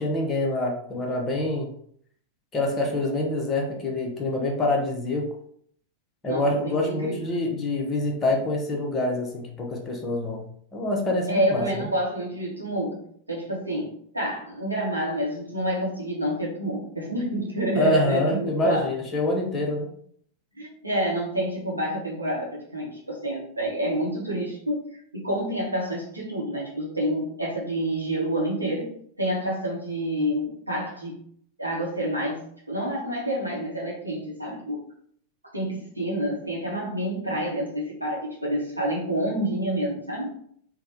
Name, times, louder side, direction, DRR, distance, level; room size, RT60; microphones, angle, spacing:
voice 1, 0.0-1.7 2.5-5.3 6.2-10.5 10.7-11.9 17.8-19.9, left 2 dB, 20° left, 0 dB, 0.8 m, -26 dB
voice 2, 6.3-7.4 11.3-18.9 20.5-24.8 25.1-28.9 29.2-31.2 31.6-32.4 32.7-34.9 35.5-40.4, right 1 dB, 85° right, -3 dB, 0.8 m, -28 dB
3.4 x 2.1 x 2.7 m, 0.63 s
figure-of-eight pair, 90°, 0 cm